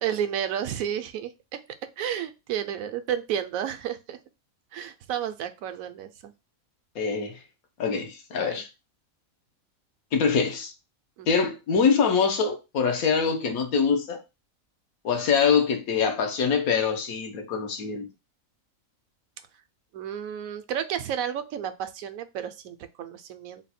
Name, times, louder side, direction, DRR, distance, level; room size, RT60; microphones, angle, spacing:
voice 1, 0.0-4.2 4.7-6.3 8.3-8.6 11.2-11.3 19.9-23.6, right 9 dB, 80° right, 1.0 m, -32 dB
voice 2, 7.0-7.4 7.8-8.7 10.1-10.7 11.3-14.2 15.0-18.1, left 6 dB, 85° left, 1.3 m, -24 dB
3.9 x 2.2 x 4.1 m
omnidirectional pair, 1.5 m